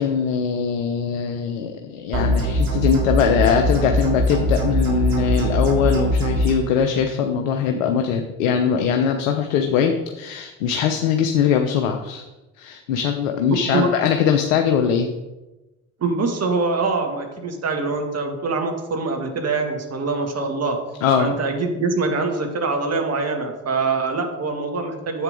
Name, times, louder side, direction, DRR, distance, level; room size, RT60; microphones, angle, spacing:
voice 1, 0.0-12.3 12.6-15.1 21.0-21.3, left 7 dB, 80° left, 5 dB, 0.9 m, -21 dB
sound 1, 2.1-6.5, equal, 60° right, 3.5 m, -21 dB
voice 2, 16.0-20.8 21.2-25.2, right 3 dB, 40° right, 3 dB, 2.3 m, -24 dB
10.5 x 7.8 x 3.9 m, 1.1 s
hypercardioid pair, 60°, 40 cm